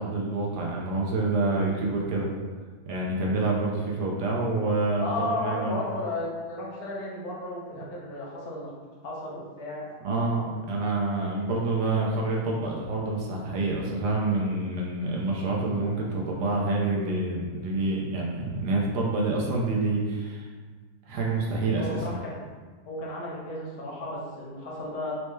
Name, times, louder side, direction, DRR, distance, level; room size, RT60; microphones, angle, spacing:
voice 1, 0.0-2.3 2.9-5.8 10.0-20.5 21.1-22.0, right 2 dB, 80° right, -2 dB, 1.2 m, -27 dB
voice 2, 5.0-8.7 9.0-9.9 21.8-22.4 22.9-25.1, left 2 dB, 70° left, -4 dB, 1.4 m, -34 dB
4.4 x 2.1 x 3.1 m, 1.5 s
omnidirectional pair, 1.7 m